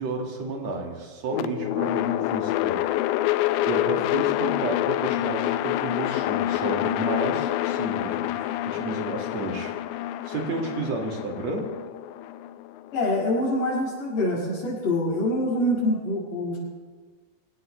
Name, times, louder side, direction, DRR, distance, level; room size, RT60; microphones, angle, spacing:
voice 1, 0.0-3.0 3.3-11.7, right 3 dB, 45° right, 0 dB, 2.8 m, -32 dB
sound 1, 1.3-13.4, left 14 dB, 90° left, 2.9 m, -27 dB
voice 2, 12.9-16.6, left 1 dB, 55° left, -4 dB, 7.3 m, -25 dB
25.0 x 17.5 x 3.3 m, 1.4 s
omnidirectional pair, 5.0 m